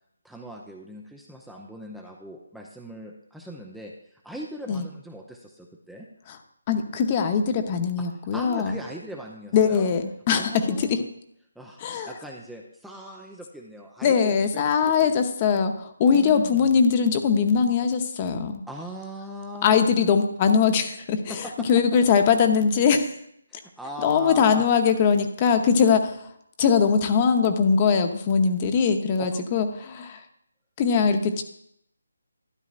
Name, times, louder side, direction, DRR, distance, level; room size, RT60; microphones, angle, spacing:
voice 1, 0.2-6.1 8.0-8.1 8.3-9.9 10.3-11.0 11.6-11.8 12.0-15.1 16.1-16.7 18.7-19.8 21.3-21.7 23.5-24.6 29.2-29.4, right 1 dB, ahead, -1 dB, 0.6 m, -40 dB
voice 2, 6.7-8.7 9.5-11.0 11.8-12.1 14.0-18.6 19.6-23.1 24.0-26.3 26.6-30.2 30.8-31.4, left 6 dB, 25° left, 6 dB, 0.8 m, -21 dB
12.5 x 10.5 x 2.5 m, 0.71 s
figure-of-eight pair, 155°, 0 cm